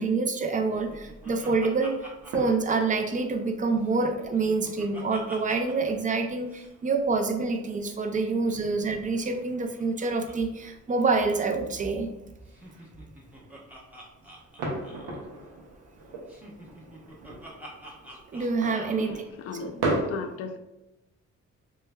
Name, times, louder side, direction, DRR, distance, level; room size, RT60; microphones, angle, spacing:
voice 1, 0.0-12.1 18.3-19.1, right 4 dB, 25° right, 6 dB, 0.5 m, -27 dB
Laughter, 0.6-3.5 3.8-5.9 6.2-6.3 6.5-6.7 8.0-10.4 10.6-10.7 11.0-11.3 12.5-15.3 16.3-19.1, right 1 dB, 5° right, 0.8 m, -47 dB
sound 1, 0.7-20.0, right 2 dB, 85° right, 0.7 m, -40 dB
voice 2, 19.0-20.6, left 5 dB, 50° left, 7 dB, 0.4 m, -37 dB
3.3 x 3.1 x 2.2 m, 0.96 s
cardioid pair, 90°, 30 cm